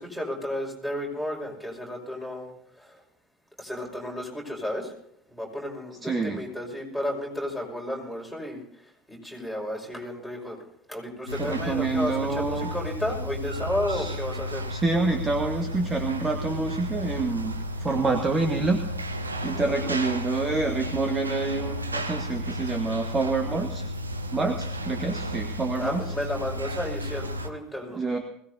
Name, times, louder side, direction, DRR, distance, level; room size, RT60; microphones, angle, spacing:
voice 1, 0.0-2.5 2.8-3.0 3.6-4.9 5.3-8.6 9.1-10.6 10.9-14.6 19.5-19.9 25.8-28.0, left 1 dB, 5° right, -1 dB, 5.3 m, -32 dB
voice 2, 6.0-6.4 11.4-12.7 13.9-14.1 14.7-18.9 19.4-23.9 24.3-26.1 27.9-28.2, right 3 dB, 20° right, 5 dB, 1.4 m, -27 dB
sound 1, 11.3-27.5, equal, 85° right, 0.9 m, -33 dB
21.5 x 17.5 x 2.7 m, 0.72 s
figure-of-eight pair, 65°, 0 cm